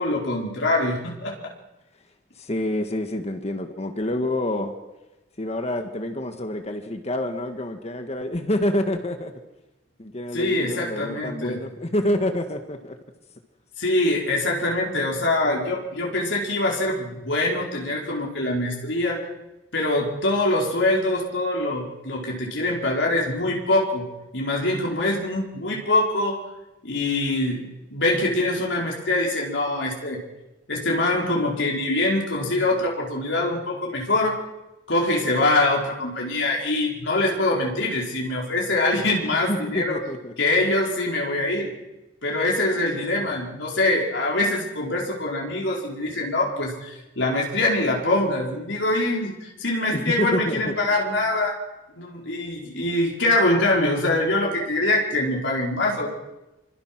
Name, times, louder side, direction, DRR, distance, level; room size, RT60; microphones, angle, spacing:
voice 1, 0.0-1.3 10.3-11.6 13.8-19.2 19.7-24.1 24.3-26.4 26.8-30.2 30.7-34.4 34.9-40.0 40.4-41.7 42.2-51.6 52.0-56.1, left 2 dB, 85° left, -2 dB, 4.9 m, -24 dB
voice 2, 2.4-4.7 5.4-9.3 10.0-13.0 39.5-40.3 42.7-43.0 49.9-50.8, left 1 dB, 35° left, 6 dB, 1.7 m, -27 dB
26.5 x 25.0 x 6.1 m, 1.0 s
head